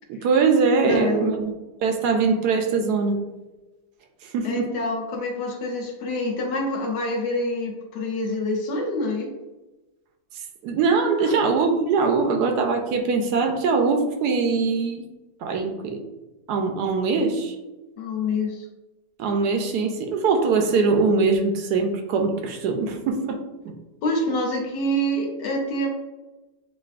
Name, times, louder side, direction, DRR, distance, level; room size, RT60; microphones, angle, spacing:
voice 1, 0.1-1.5 1.8-3.2 4.2-4.7 10.6-15.0 15.4-16.0 16.5-17.6 19.2-23.7, right 4 dB, 75° right, 4 dB, 1.1 m, -22 dB
voice 2, 0.9-1.3 4.4-9.3 11.2-11.4 18.0-18.6 24.0-25.9, left 1 dB, 85° left, 0 dB, 1.4 m, -26 dB
7.2 x 2.6 x 2.4 m, 1.1 s
omnidirectional pair, 1.8 m